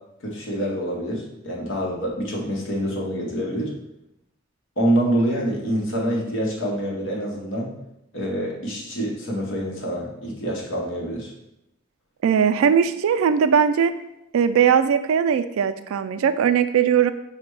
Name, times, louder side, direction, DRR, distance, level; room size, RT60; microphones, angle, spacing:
voice 1, 0.2-3.7 4.8-7.7 8.1-11.3, right 1 dB, 65° left, -2 dB, 1.1 m, -26 dB
voice 2, 12.2-13.9 14.3-17.1, right 7 dB, 90° right, 11 dB, 0.3 m, -19 dB
5.0 x 2.2 x 4.6 m, 0.84 s
head